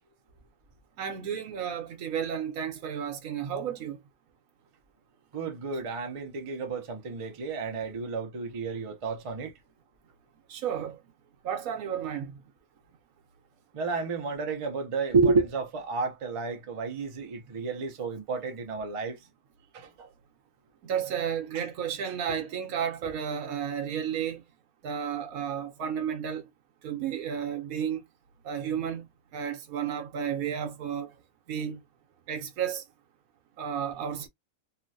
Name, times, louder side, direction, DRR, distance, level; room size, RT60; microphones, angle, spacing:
voice 1, 1.0-4.0 10.5-11.0 11.4-12.3 20.8-24.4 24.8-26.4 26.8-28.0 28.4-29.1 29.3-31.1 31.5-31.8 32.3-32.8 33.6-34.3, right 8 dB, 80° right, 1.1 m, -32 dB
voice 2, 5.3-9.5 13.7-19.2 19.7-20.1 21.5-21.6, right 4 dB, 40° right, 0.5 m, -30 dB
3.1 x 2.5 x 2.6 m
omnidirectional pair, 1.5 m